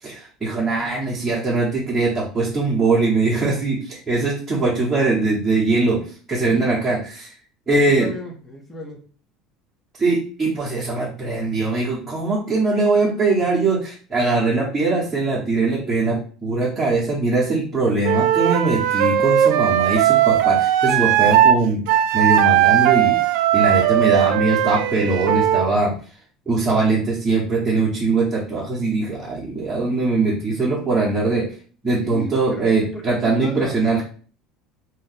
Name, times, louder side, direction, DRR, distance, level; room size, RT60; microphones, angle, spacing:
voice 1, 0.0-6.0 6.3-7.3 7.7-8.1 10.0-21.8 22.1-23.2 23.5-25.9 26.5-31.5 31.8-34.0, right 3 dB, 15° right, -7 dB, 0.9 m, -21 dB
voice 2, 6.5-6.8 8.0-9.0 32.0-34.0, equal, 10° left, -1 dB, 0.7 m, -35 dB
Wind instrument woodwind instrument, 18.0-21.6 21.9-25.7, right 11 dB, 70° right, 0.3 m, -18 dB
2.7 x 2.5 x 4.0 m, 0.41 s
cardioid pair, 155°, 0 cm